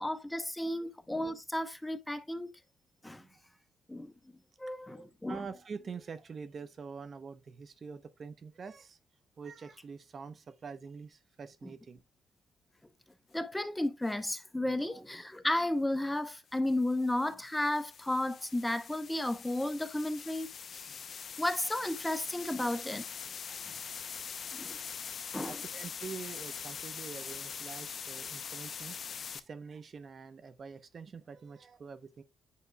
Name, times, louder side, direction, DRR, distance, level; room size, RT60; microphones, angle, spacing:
voice 1, 0.0-2.5 3.0-3.2 3.9-4.1 4.6-5.4 13.3-20.5 20.7-20.9 21.4-23.0 24.5-24.8 25.3-25.6, left 1 dB, 10° left, 0.8 m, -33 dB
voice 2, 4.9-9.0 9.4-12.0 14.8-15.0 23.5-23.8 25.2-29.0 29.3-32.2, right 5 dB, 45° right, 0.7 m, -46 dB
sound 1, 14.1-14.4 16.5-29.4, left 7 dB, 50° left, 0.6 m, -43 dB
8.4 x 5.2 x 2.2 m
cardioid pair, 90°, 0 cm